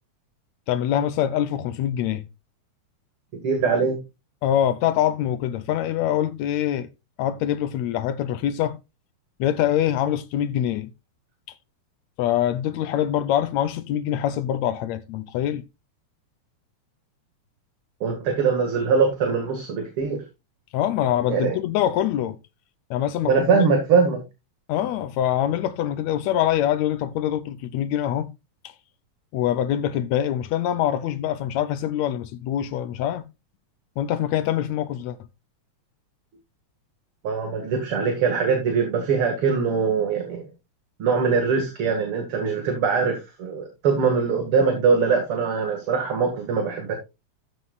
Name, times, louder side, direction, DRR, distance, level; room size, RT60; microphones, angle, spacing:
voice 1, 0.7-2.3 4.4-6.9 7.2-8.8 9.4-10.9 12.2-15.6 20.7-22.4 22.9-23.7 24.7-28.3 29.3-33.2 34.0-35.2, left 11 dB, 75° left, 1.9 m, -24 dB
voice 2, 3.4-4.0 18.0-20.2 21.3-21.5 23.2-24.2 37.2-40.4 41.0-46.9, right 5 dB, 50° right, 2.6 m, -22 dB
13.5 x 7.9 x 2.3 m
omnidirectional pair, 3.4 m